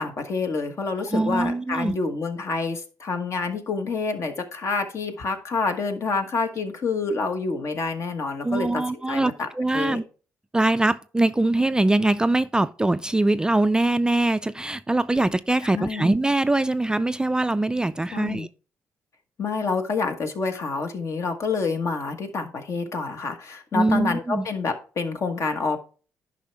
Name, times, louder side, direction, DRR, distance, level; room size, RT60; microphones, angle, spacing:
voice 1, 0.0-8.8 9.1-9.5 9.7-10.0 15.7-16.1 18.1-18.5 19.4-25.8, left 4 dB, 55° left, 1.3 m, -28 dB
voice 2, 1.1-1.9 8.4-10.0 10.5-18.5 23.7-24.5, right 2 dB, 15° right, 0.3 m, -22 dB
10.0 x 5.5 x 3.4 m
cardioid pair, 90°, 6 cm